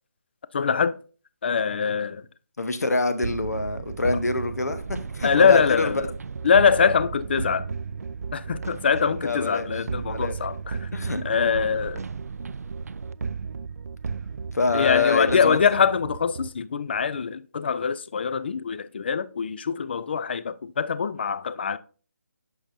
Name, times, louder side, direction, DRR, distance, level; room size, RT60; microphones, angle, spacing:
voice 1, 0.5-0.9 1.4-2.2 5.2-6.1 6.4-7.7 8.3-10.9 11.2-12.0 14.7-21.8, left 6 dB, 40° left, 0.4 m, -23 dB
voice 2, 2.6-5.9 9.2-9.7 10.1-10.4 10.9-11.2 14.5-15.6, left 3 dB, 80° left, 1.1 m, -26 dB
sound 1, 3.2-16.5, right 5 dB, 70° right, 0.3 m, -34 dB
8.6 x 6.1 x 2.7 m
figure-of-eight pair, 160°, 9 cm